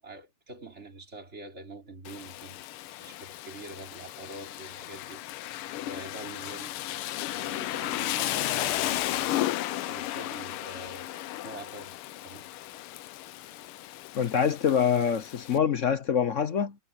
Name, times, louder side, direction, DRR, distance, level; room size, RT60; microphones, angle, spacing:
voice 1, 0.0-2.6 3.0-5.2 5.8-6.8 7.3-9.4 9.8-12.5, right 2 dB, 30° right, 3.6 m, -45 dB
Rain, 2.0-15.6, left 14 dB, 90° left, 1.6 m, -34 dB
voice 2, 14.1-16.8, left 7 dB, 60° left, 0.8 m, -25 dB
omnidirectional pair, 2.4 m